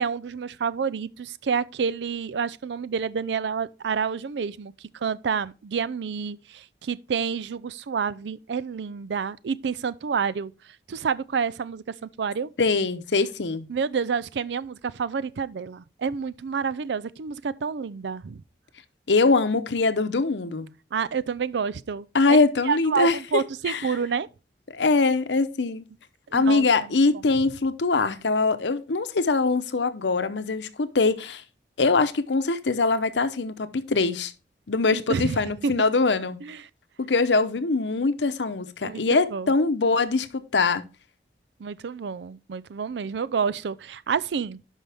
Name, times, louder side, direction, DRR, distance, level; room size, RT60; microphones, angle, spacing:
voice 1, 0.0-12.5 13.7-18.4 20.9-22.4 22.7-24.3 26.3-27.0 34.9-35.9 36.4-36.7 38.8-39.5 41.6-44.6, right 6 dB, 80° right, 0.4 m, -29 dB
voice 2, 12.6-13.7 19.1-20.7 22.1-23.8 24.7-25.8 26.3-31.4 31.8-34.3 34.7-36.4 37.0-40.8, left 3 dB, 90° left, 0.8 m, -23 dB
11.5 x 5.4 x 3.4 m
head